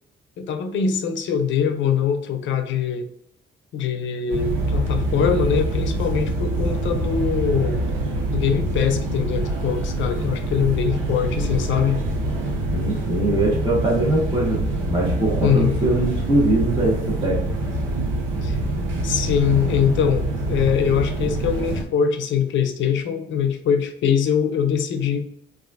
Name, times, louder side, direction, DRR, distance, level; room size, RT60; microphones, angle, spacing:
voice 1, 0.4-3.0 3.7-7.8 8.3-12.0 15.4-15.7 18.4-18.6 19.0-25.3, left 7 dB, 75° left, 7 dB, 0.6 m, -22 dB
sound 1, 4.3-21.8, right 1 dB, 90° right, 0.7 m, -25 dB
voice 2, 12.7-14.6 14.9-17.4, right 2 dB, 20° right, -4 dB, 1.3 m, -22 dB
4.0 x 2.5 x 2.5 m, 0.72 s
cardioid pair, 90°, 20 cm